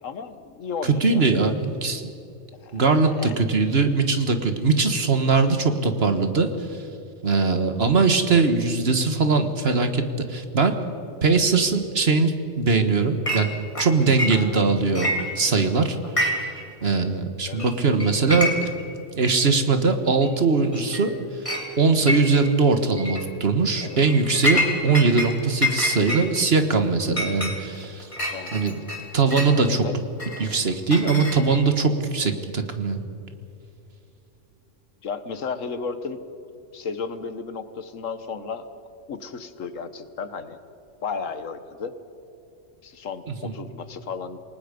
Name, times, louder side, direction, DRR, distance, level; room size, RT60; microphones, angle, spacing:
voice 1, 0.0-1.3 2.6-3.4 7.9-8.2 17.5-17.7 23.8-24.0 28.3-28.5 29.8-29.9 35.0-36.2 36.7-38.7 39.1-40.6 41.0-42.0 42.8-44.4, left 5 dB, 85° left, 11 dB, 1.6 m, -34 dB
voice 2, 0.8-2.0 2.7-6.8 7.2-10.0 10.3-10.8 11.2-13.5 13.8-15.1 15.3-16.0 16.8-18.7 19.2-21.5 21.8-28.1 28.5-28.8 29.1-29.9 30.4-33.0 43.3-43.5, right 4 dB, 55° right, 8 dB, 1.7 m, -21 dB
Chink clink, 13.3-13.5 13.8-14.6 14.9-15.7 16.0-16.6 16.9-17.0 17.6-17.7 18.0-18.8 19.2-19.3 20.2-20.3 20.7-21.1 21.5-21.7 22.1-22.5 23.0-23.2 23.8-25.3 25.6-29.6 30.2-31.7, left 1 dB, 25° left, 2.8 m, -27 dB
28.0 x 19.0 x 5.3 m, 2.8 s
omnidirectional pair, 1.3 m